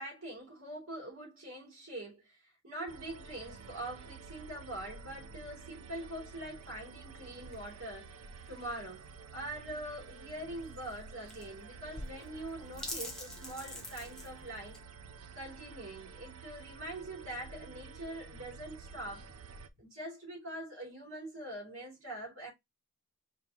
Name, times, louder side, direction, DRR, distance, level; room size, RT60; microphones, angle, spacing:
voice 1, 0.0-8.1 8.5-9.1 9.3-14.8 15.3-19.2 19.8-22.5, right 1 dB, 65° right, 3.1 m, -43 dB
sound 1, 2.9-19.7, right 4 dB, 80° right, 0.5 m, -51 dB
sound 2, 6.6-14.8, left 1 dB, 5° left, 1.1 m, -47 dB
5.0 x 3.2 x 3.0 m
head